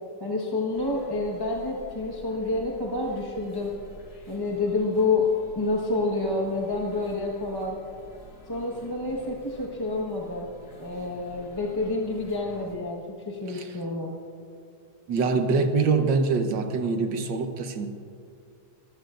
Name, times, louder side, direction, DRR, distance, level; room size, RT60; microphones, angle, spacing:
voice 1, 0.2-3.7 4.3-5.3 5.5-7.8 8.5-10.5 10.8-14.1, left 3 dB, 15° left, -2 dB, 1.1 m, -28 dB
sound 1, 0.7-12.8, equal, 55° left, 2.5 m, -49 dB
voice 2, 13.5-13.8 15.1-17.9, right 4 dB, 80° right, 6 dB, 1.7 m, -24 dB
24.5 x 14.5 x 2.5 m, 2.6 s
omnidirectional pair, 2.0 m